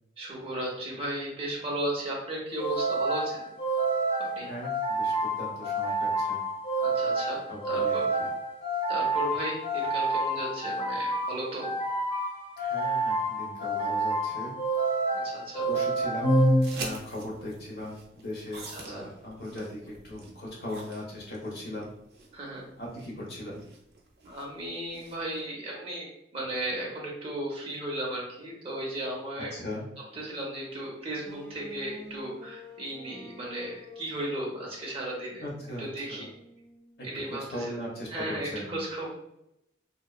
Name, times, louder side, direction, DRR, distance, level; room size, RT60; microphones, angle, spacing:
voice 1, 0.2-3.5 4.2-4.5 6.8-8.0 8.9-11.7 15.1-15.7 18.7-19.1 22.3-22.7 24.2-29.5 30.1-35.4 35.8-36.3 37.0-37.8 38.1-39.1, right 1 dB, 30° right, -4 dB, 0.8 m, -35 dB
sound 1, 2.6-17.1, right 1 dB, 35° left, 1.2 m, -28 dB
voice 2, 4.5-6.4 7.5-8.3 12.6-14.5 15.6-21.9 22.8-23.7 29.5-29.9 35.4-36.3 37.0-38.8, left 1 dB, 65° left, -4 dB, 0.9 m, -39 dB
sound 2, 16.6-25.4, right 3 dB, 60° right, 0.5 m, -46 dB
sound 3, 31.2-37.1, left 2 dB, 10° left, 0.4 m, -49 dB
2.8 x 2.3 x 2.2 m, 0.81 s
head